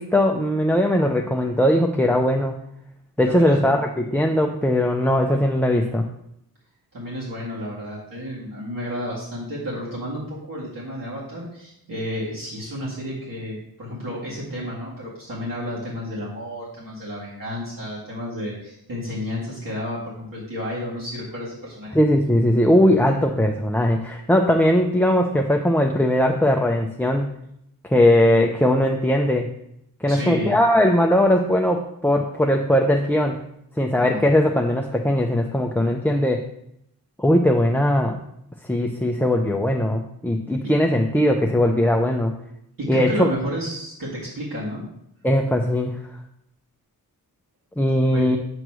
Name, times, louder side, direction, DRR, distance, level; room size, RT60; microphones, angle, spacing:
voice 1, 0.0-2.6 3.2-6.1 21.9-27.3 27.8-29.5 30.0-33.4 33.8-36.4 37.2-38.2 38.6-42.3 42.9-43.3 45.2-46.0 47.8-48.4, left 1 dB, 5° left, 1 dB, 0.4 m, -19 dB
voice 2, 3.3-3.8 6.9-21.9 30.1-30.6 34.0-34.3 42.8-44.8 48.1-48.2, equal, 60° right, -7 dB, 2.2 m, -31 dB
7.9 x 3.1 x 6.1 m, 0.77 s
wide cardioid pair, 155°, 37 cm